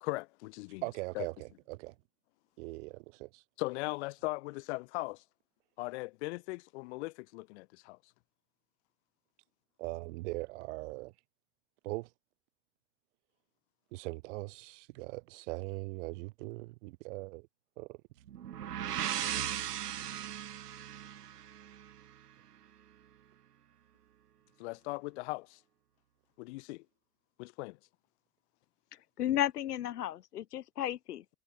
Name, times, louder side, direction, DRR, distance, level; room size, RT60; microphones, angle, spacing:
voice 1, 0.0-0.8 1.2-1.3 3.6-5.2 5.8-8.0 24.6-25.6 26.4-26.9 27.4-27.8, left 23 dB, 45° left, 1.8 m, -38 dB
voice 2, 0.8-1.9 2.6-3.4 9.8-11.1 11.8-12.1 13.9-17.5 17.8-18.0 20.0-20.4, right 23 dB, 50° right, 5.8 m, -41 dB
sound 1, 18.3-22.1, right 10 dB, 85° right, 4.5 m, -37 dB
voice 3, 29.2-31.2, left 12 dB, 85° left, 1.7 m, -33 dB
supercardioid pair, 145°, 46 cm